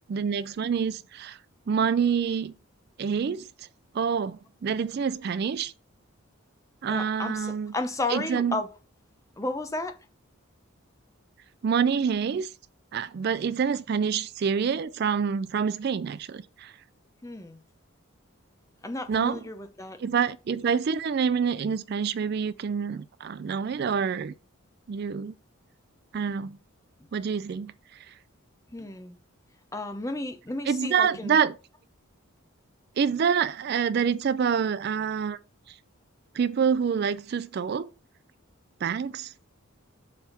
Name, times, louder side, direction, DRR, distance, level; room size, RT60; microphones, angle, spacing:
voice 1, 0.1-1.4 1.7-2.5 3.0-3.7 3.9-5.7 6.8-7.7 8.1-8.6 11.6-12.5 12.9-16.7 19.1-19.4 20.0-24.3 24.9-25.3 26.1-26.6 27.1-28.1 30.7-31.5 33.0-35.4 35.7-35.8 36.3-37.9 38.8-39.3, right 6 dB, 50° right, 0.3 m, -27 dB
voice 2, 6.9-8.7 9.4-10.0 17.2-17.6 18.8-20.0 28.7-29.2 29.7-31.4, left 2 dB, 15° left, 0.7 m, -33 dB
7.1 x 3.5 x 5.7 m
head